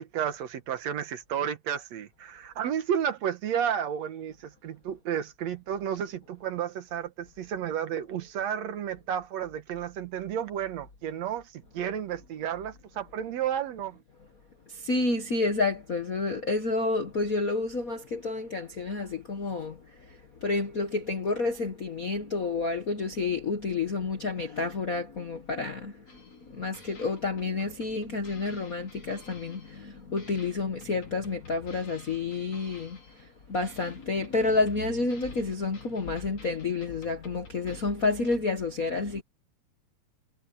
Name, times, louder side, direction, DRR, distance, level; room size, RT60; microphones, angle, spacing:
voice 1, 0.0-14.0, right 9 dB, 65° right, 2.3 m, -32 dB
voice 2, 14.7-19.8 20.4-26.0 26.5-39.2, left 3 dB, 50° left, 1.0 m, -29 dB
sound 1, 26.1-26.5 26.7-29.9 30.2-33.3 33.6-38.4, left 3 dB, 75° left, 6.9 m, -55 dB
omnidirectional pair, 3.4 m